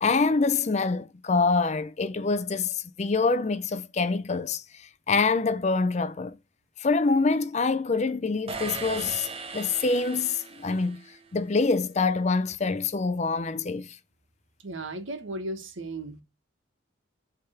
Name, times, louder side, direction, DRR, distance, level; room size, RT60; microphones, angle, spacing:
voice 1, 0.0-4.6 5.1-6.4 6.8-11.0 11.3-14.0, left 4 dB, 35° left, 0.5 m, -25 dB
sound 1, 8.5-11.3, right 4 dB, 30° right, 0.8 m, -38 dB
voice 2, 14.6-16.2, right 2 dB, 85° right, 1.5 m, -35 dB
8.0 x 3.5 x 5.7 m
head